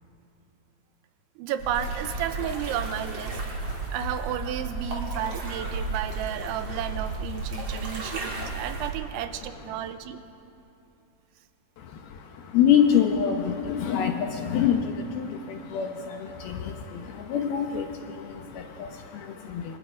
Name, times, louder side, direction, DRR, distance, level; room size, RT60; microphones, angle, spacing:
voice 1, 1.4-3.4 3.9-10.2, right 10 dB, 85° right, 10 dB, 3.2 m, -32 dB
sound 1, 1.6-8.9, right 3 dB, 35° right, 3.9 m, -33 dB
voice 2, 9.4-9.9 11.8-19.8, left 8 dB, 70° left, 4 dB, 2.4 m, -26 dB
26.0 x 23.5 x 5.2 m, 2.9 s
omnidirectional pair, 5.4 m